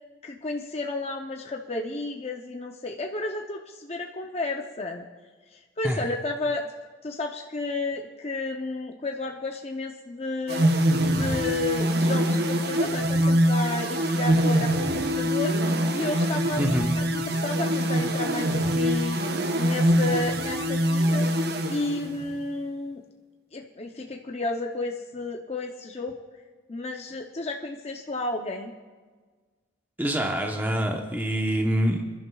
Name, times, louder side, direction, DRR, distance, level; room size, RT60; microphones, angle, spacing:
voice 1, 0.2-5.1 5.5-6.7 7.0-10.7 11.0-15.6 15.9-19.2 19.5-21.3 21.7-23.0 23.5-26.2 26.7-28.7, left 2 dB, 35° left, 2 dB, 0.6 m, -32 dB
sound 1, 10.5-22.4, equal, 55° right, 0.9 m, -24 dB
voice 2, 16.6-16.9 30.0-32.0, equal, 10° right, 2 dB, 0.8 m, -25 dB
27.0 x 11.0 x 2.3 m, 1.4 s
head